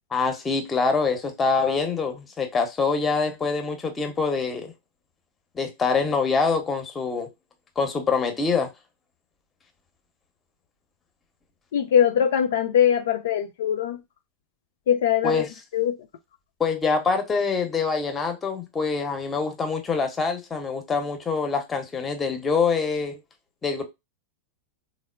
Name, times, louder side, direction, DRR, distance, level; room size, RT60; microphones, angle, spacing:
voice 1, 0.1-4.7 5.5-7.3 7.8-8.7 15.2-15.5 16.6-23.2 23.6-23.8, left 4 dB, 20° left, 0.7 m, -25 dB
voice 2, 11.7-14.0 14.9-15.4 15.7-16.0, left 9 dB, 60° left, 0.3 m, -21 dB
3.5 x 2.0 x 2.2 m
figure-of-eight pair, 90°, 0 cm